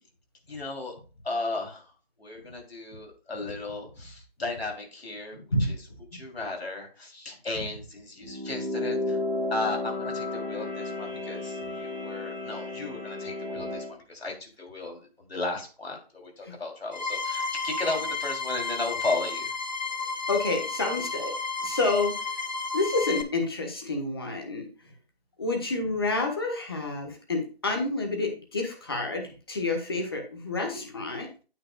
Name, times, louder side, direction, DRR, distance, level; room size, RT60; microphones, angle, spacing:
voice 1, 0.5-0.9 1.2-1.9 2.2-5.8 6.1-9.2 9.5-19.5, left 3 dB, 75° left, 1 dB, 3.1 m, -35 dB
voice 2, 5.3-5.7 16.4-16.5 20.3-21.3 21.6-22.1 22.7-24.7 25.4-31.3, left 3 dB, 25° left, 3 dB, 1.2 m, -29 dB
sound 1, 8.2-13.9, left 2 dB, ahead, 1.2 m, -33 dB
sound 2, 16.9-23.2, left 3 dB, 45° left, 0.9 m, -32 dB
8.9 x 7.6 x 2.3 m, 0.36 s
figure-of-eight pair, 170°, 31 cm